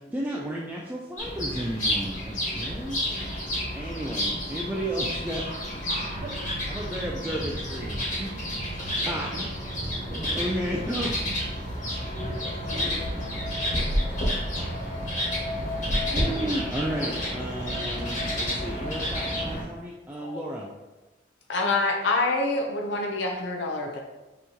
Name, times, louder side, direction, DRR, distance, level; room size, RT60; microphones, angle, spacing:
voice 1, 0.1-5.5 6.7-8.3 8.8-9.5 10.1-11.1 12.1-12.3 12.7-12.9 15.5-20.7, right 1 dB, 10° right, -3 dB, 0.3 m, -33 dB
sound 1, 1.2-19.6, equal, 45° left, 1.4 m, -30 dB
sound 2, 6.2-15.8, right 2 dB, 75° right, 0.7 m, -40 dB
voice 2, 10.0-10.5 11.6-11.8 12.5-14.4, right 1 dB, 45° right, -1 dB, 0.9 m, -44 dB
voice 3, 21.5-24.0, left 2 dB, 85° left, 1 dB, 0.6 m, -26 dB
5.5 x 3.0 x 2.7 m, 1.1 s
head